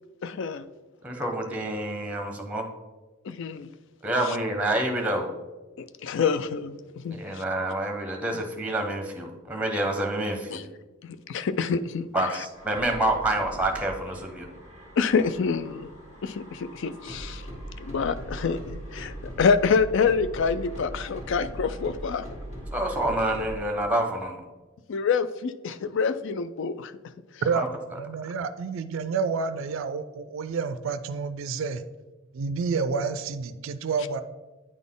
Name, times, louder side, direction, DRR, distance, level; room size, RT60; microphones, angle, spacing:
voice 1, 0.2-0.7 3.2-3.7 4.3-4.4 5.8-7.2 10.5-10.6 11.0-12.1 15.0-15.9 16.2-17.4 17.8-22.2 24.9-26.9, left 5 dB, 60° left, 14 dB, 0.4 m, -26 dB
voice 2, 1.0-2.7 4.0-5.3 7.1-10.6 12.1-14.5 22.7-24.4 27.5-27.7, right 1 dB, 5° right, 3 dB, 0.8 m, -28 dB
sound 1, 12.5-23.6, right 1 dB, 35° left, 1.7 m, -40 dB
voice 3, 27.4-31.8 32.3-34.2, right 5 dB, 65° right, 12 dB, 0.4 m, -29 dB
9.2 x 4.0 x 3.7 m, 1.2 s
head